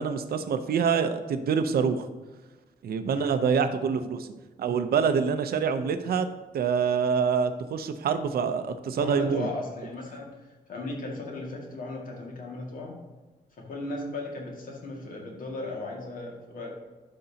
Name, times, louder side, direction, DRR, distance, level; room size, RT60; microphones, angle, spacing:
voice 1, 0.0-2.1 2.8-4.3 4.6-6.3 6.5-9.5, right 6 dB, 75° right, 9 dB, 0.7 m, -26 dB
voice 2, 3.1-3.4 8.9-10.3 10.7-12.9 13.6-16.7, left 2 dB, 60° left, -1 dB, 2.0 m, -36 dB
11.5 x 5.4 x 2.8 m, 1.2 s
wide cardioid pair, 165°, 16 cm